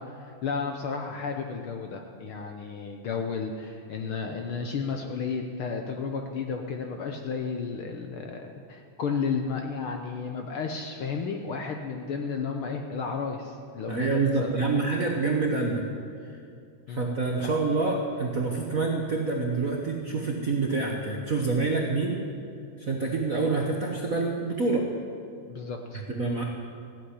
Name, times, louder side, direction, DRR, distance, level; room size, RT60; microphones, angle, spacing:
voice 1, 0.0-14.7 16.9-17.0 17.4-17.5 25.5-26.0, left 5 dB, 70° left, 4 dB, 1.3 m, -33 dB
voice 2, 13.9-15.9 16.2-16.4 16.9-22.2 22.8-24.9 26.1-26.4, right 3 dB, 75° right, 0 dB, 0.7 m, -27 dB
15.0 x 8.2 x 9.9 m, 2.4 s
omnidirectional pair, 3.4 m